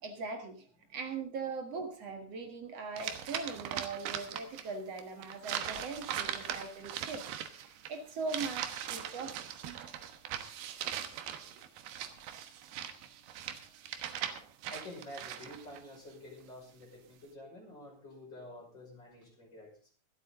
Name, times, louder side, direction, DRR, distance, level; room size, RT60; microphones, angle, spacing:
voice 1, 0.0-7.3 7.6-9.7, right 4 dB, 50° right, 6 dB, 2.5 m, -40 dB
sound 1, 3.0-4.7 5.0-15.8, right 10 dB, 90° right, 3.2 m, -40 dB
voice 2, 14.7-19.9, left 1 dB, 30° left, -2 dB, 6.1 m, -49 dB
24.5 x 8.4 x 3.8 m, 0.37 s
omnidirectional pair, 4.2 m